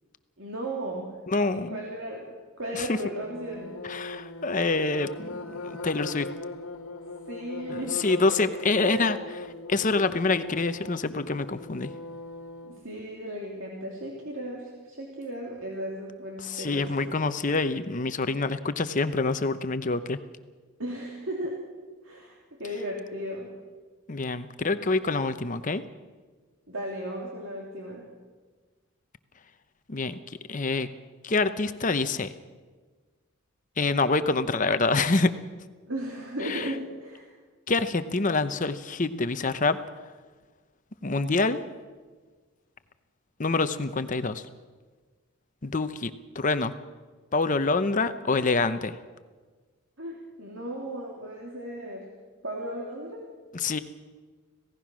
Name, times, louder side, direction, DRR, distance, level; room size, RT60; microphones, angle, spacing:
voice 1, 0.4-1.1 1.5-3.7 7.3-8.0 8.4-8.5 8.8-9.2 12.6-17.1 20.8-21.6 22.0-23.5 26.7-28.1 35.8-37.3 50.0-52.1 52.4-53.3, right 1 dB, 60° right, -2 dB, 3.0 m, -36 dB
voice 2, 1.3-1.8 2.7-3.0 3.8-6.3 7.7-9.2 9.7-11.9 16.4-20.2 24.1-25.8 29.9-30.9 31.2-32.3 33.8-35.3 36.4-36.7 37.7-39.8 41.0-41.6 43.4-44.5 45.6-46.7 47.3-49.0 53.5-53.8, left 3 dB, 35° left, 11 dB, 0.8 m, -26 dB
sound 1, 3.2-12.8, left 3 dB, 80° left, 1.6 m, -39 dB
26.5 x 17.0 x 6.2 m, 1.4 s
head